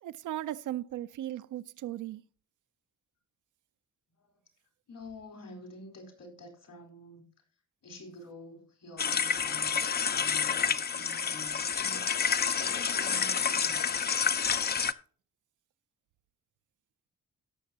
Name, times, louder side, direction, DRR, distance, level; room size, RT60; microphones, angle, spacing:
voice 1, 0.0-2.2, right 13 dB, 60° right, 0.5 m, -37 dB
voice 2, 4.9-7.3 7.8-14.3, left 2 dB, 65° left, 4.1 m, -48 dB
sound 1, 9.0-14.9, left 6 dB, 30° left, 0.5 m, -29 dB
17.0 x 6.5 x 2.8 m
hypercardioid pair, 45°, 35 cm